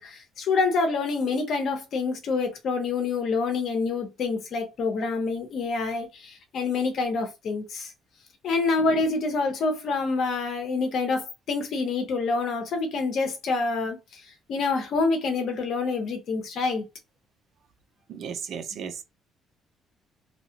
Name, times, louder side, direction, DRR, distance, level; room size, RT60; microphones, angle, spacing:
voice 1, 0.0-7.9 8.4-14.0 14.5-16.8, left 4 dB, 55° left, 0.9 m, -27 dB
voice 2, 18.1-19.0, right 7 dB, 55° right, 0.5 m, -35 dB
2.8 x 2.3 x 2.8 m
cardioid pair, 145°, 0 cm